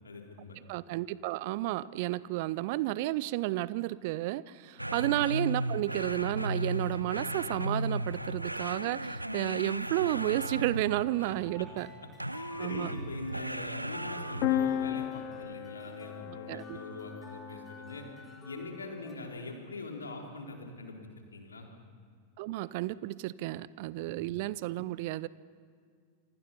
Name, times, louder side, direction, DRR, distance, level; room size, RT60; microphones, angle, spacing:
voice 1, 0.0-0.6 4.8-4.9 11.2-11.7 12.3-18.1 18.4-21.7 24.0-24.1, left 2 dB, 75° left, 1 dB, 3.8 m, -43 dB
voice 2, 0.7-11.9 12.6-12.9 16.3-16.8 22.4-25.3, right 17 dB, 50° right, 20 dB, 0.6 m, -32 dB
sound 1, 4.8-11.2 12.2-14.8, right 1 dB, 85° right, 0.6 m, -35 dB
sound 2, 10.4-19.1, left 2 dB, 10° left, 4.4 m, -53 dB
sound 3, 14.4-18.2, left 11 dB, 40° left, 1.3 m, -34 dB
28.5 x 25.5 x 5.6 m, 2.1 s
figure-of-eight pair, 90°, 0 cm